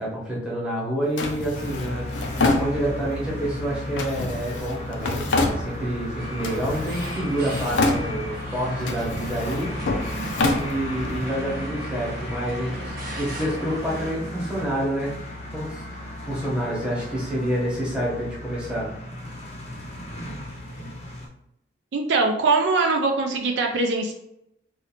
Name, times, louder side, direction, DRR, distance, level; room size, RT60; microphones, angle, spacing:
voice 1, 0.0-9.8 10.4-15.1 15.5-18.9, right 1 dB, 5° right, -6 dB, 0.9 m, -28 dB
Drawer open or close, 1.2-3.2 4.0-6.1 6.4-7.2 7.5-8.4 8.8-11.2, left 2 dB, 80° left, 0.4 m, -27 dB
sound 1, 1.5-21.3, left 1 dB, 35° left, 0.6 m, -35 dB
sound 2, 6.2-14.1, right 1 dB, 50° right, 0.8 m, -37 dB
voice 2, 21.9-24.1, right 3 dB, 70° right, 2 dB, 0.4 m, -22 dB
3.1 x 2.5 x 2.8 m, 0.80 s
head